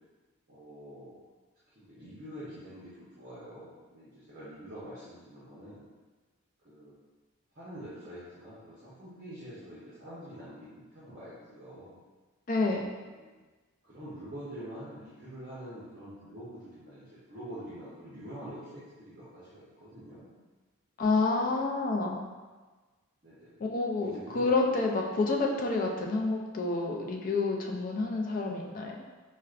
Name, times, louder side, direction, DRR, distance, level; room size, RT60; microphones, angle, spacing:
voice 1, 0.5-1.1 1.8-5.9 6.6-6.9 7.5-12.0 13.0-13.3 13.8-20.3 23.2-23.6 24.0-24.5, equal, 45° right, -10 dB, 0.7 m, -46 dB
voice 2, 12.5-12.9 21.0-22.2 23.6-29.0, left 3 dB, 40° left, 0 dB, 0.3 m, -29 dB
4.5 x 2.2 x 2.4 m, 1.3 s
head